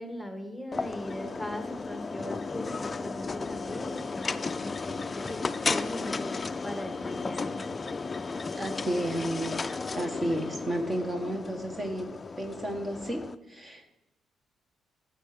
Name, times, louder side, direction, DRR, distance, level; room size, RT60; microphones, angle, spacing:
voice 1, 0.0-7.6, equal, ahead, 6 dB, 1.4 m, -40 dB
sound 1, 0.7-13.3, left 4 dB, 30° left, 0.5 m, -34 dB
voice 2, 8.5-12.1 12.4-13.2 13.5-13.9, right 1 dB, 25° right, 5 dB, 1.5 m, -32 dB
11.5 x 7.5 x 6.8 m, 0.96 s
cardioid pair, 90°, 0 cm